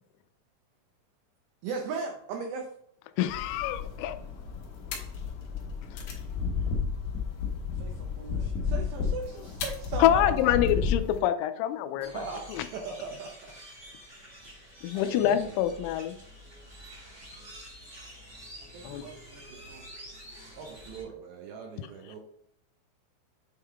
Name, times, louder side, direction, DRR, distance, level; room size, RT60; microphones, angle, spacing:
voice 1, 1.6-2.7 7.7-10.6 18.6-19.8, right 5 dB, 90° right, 2 dB, 2.4 m, -38 dB
voice 2, 3.2-4.2 10.0-12.1 14.8-16.1 18.8-19.0, left 11 dB, 90° left, 9 dB, 3.2 m, -26 dB
sound 1, 3.3-11.2, left 6 dB, 70° left, 2.5 m, -32 dB
sound 2, 12.0-21.0, equal, 30° right, 1.4 m, -48 dB
voice 3, 12.0-13.6 14.5-14.7 14.9-15.9 20.6-22.2, right 4 dB, 75° right, 0 dB, 2.7 m, -41 dB
8.4 x 3.7 x 3.4 m, 0.69 s
omnidirectional pair, 5.8 m